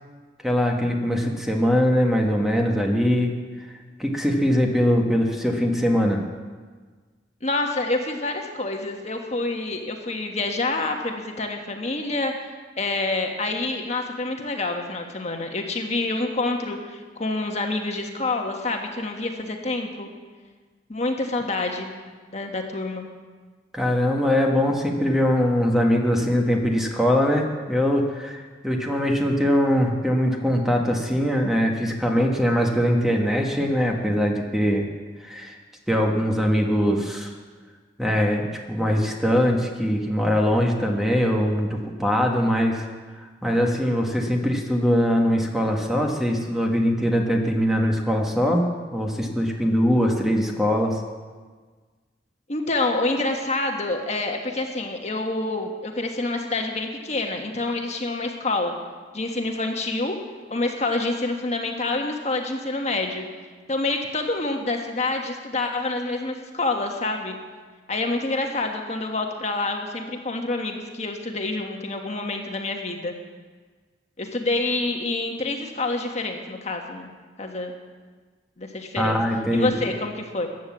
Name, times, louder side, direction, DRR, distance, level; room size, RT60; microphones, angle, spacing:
voice 1, 0.4-3.3 4.0-6.2 23.7-34.9 35.2-35.5 35.9-37.3 38.0-42.9 43.4-48.6 48.9-51.0 79.0-79.7, equal, ahead, 1 dB, 1.3 m, -22 dB
voice 2, 7.4-20.1 20.9-21.9 22.3-23.0 52.5-58.7 59.1-60.1 60.5-63.2 63.7-67.4 67.9-73.1 74.2-77.1 77.4-77.7 78.6-79.2 79.5-80.5, left 2 dB, 40° left, 3 dB, 1.4 m, -27 dB
14.5 x 9.3 x 7.3 m, 1.5 s
head